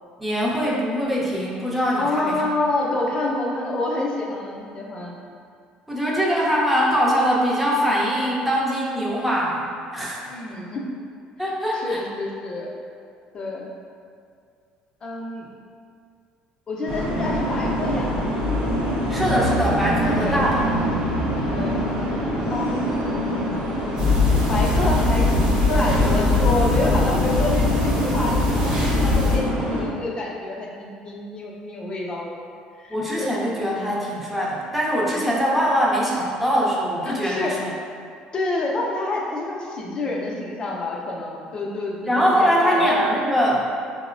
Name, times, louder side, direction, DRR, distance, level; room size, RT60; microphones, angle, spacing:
voice 1, 0.2-2.4 5.9-9.7 9.9-10.4 11.4-12.0 19.1-20.7 32.9-37.7 42.1-43.6, equal, 5° right, -6 dB, 0.7 m, -22 dB
voice 2, 2.0-5.2 10.3-10.8 11.7-12.7 13.3-13.7 15.0-15.5 16.7-18.5 20.1-20.5 21.5-21.9 22.2-23.4 24.5-32.3 32.8-33.3 37.0-37.6 38.3-43.0, left 2 dB, 35° left, -2 dB, 0.5 m, -28 dB
sound 1, 16.9-29.8, equal, 65° right, 0.9 m, -25 dB
sound 2, 24.0-29.4, left 3 dB, 35° right, 1.0 m, -21 dB
4.2 x 2.0 x 2.5 m, 2.3 s
cardioid pair, 105°, 3 cm